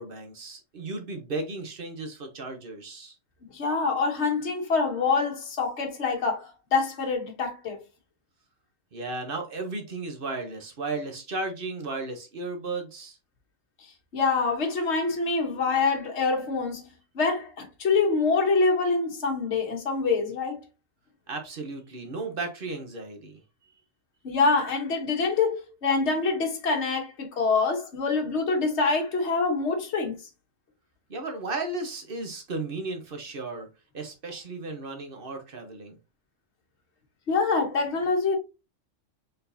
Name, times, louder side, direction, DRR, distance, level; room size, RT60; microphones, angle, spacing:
voice 1, 0.0-3.1 8.9-13.2 21.3-23.4 31.1-33.7 33.9-36.0, right 3 dB, 50° right, 1.1 m, -35 dB
voice 2, 3.5-7.8 14.1-16.9 17.1-20.6 24.2-30.1 37.3-38.4, left 4 dB, 60° left, 1.4 m, -25 dB
4.5 x 3.9 x 2.6 m
omnidirectional pair, 1.3 m